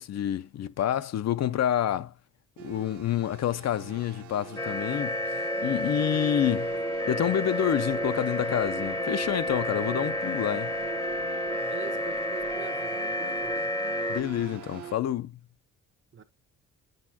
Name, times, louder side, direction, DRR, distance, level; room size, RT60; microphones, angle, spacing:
voice 1, 0.0-2.1 2.6-5.2 5.6-6.7 7.1-10.7 14.1-15.3, left 11 dB, 60° left, 0.6 m, -28 dB
sound 1, 2.6-14.9, right 8 dB, 80° right, 1.2 m, -41 dB
sound 2, 4.6-14.2, left 1 dB, 10° left, 0.8 m, -30 dB
voice 2, 11.7-13.7 16.1-16.2, right 6 dB, 40° right, 1.1 m, -43 dB
8.5 x 6.5 x 2.8 m
cardioid pair, 90°, 30 cm